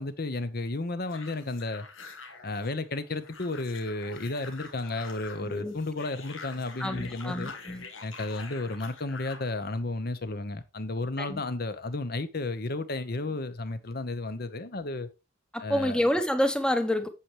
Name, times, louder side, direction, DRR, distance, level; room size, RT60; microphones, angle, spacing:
voice 1, 0.0-1.9 2.4-7.5 8.0-15.1 15.6-16.0, left 2 dB, 50° left, 0.9 m, -33 dB
sound 1, 1.1-9.5, left 4 dB, 85° left, 1.9 m, -46 dB
voice 2, 5.4-5.7 6.8-7.8 11.2-11.4 15.5-17.1, left 1 dB, 5° left, 0.9 m, -28 dB
8.5 x 7.4 x 3.1 m
head